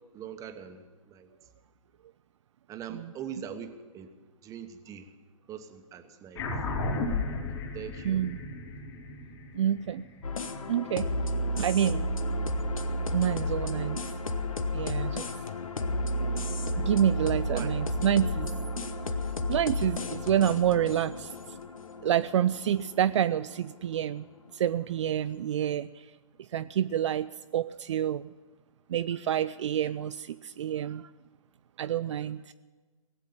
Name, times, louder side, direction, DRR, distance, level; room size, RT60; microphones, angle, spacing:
voice 1, 0.1-1.3 2.7-4.1 4.4-5.1 5.5-6.8 7.7-8.2 17.5-17.8, right 8 dB, 20° right, 8 dB, 1.1 m, -42 dB
sound 1, 6.3-11.1, left 3 dB, 50° left, 3.5 m, -34 dB
voice 2, 8.0-8.4 9.6-10.1 10.7-11.1 11.6-12.1 13.1-14.0 14.7-15.3 16.8-18.5 19.5-21.3 22.0-24.3 24.5-25.9 26.5-28.3 28.9-31.1 31.8-32.5, right 10 dB, 60° right, 13 dB, 0.4 m, -28 dB
sound 2, 10.2-24.4, left 1 dB, 80° left, 1.2 m, -32 dB
18.5 x 8.2 x 8.7 m, 1.4 s
hypercardioid pair, 130°, 17 cm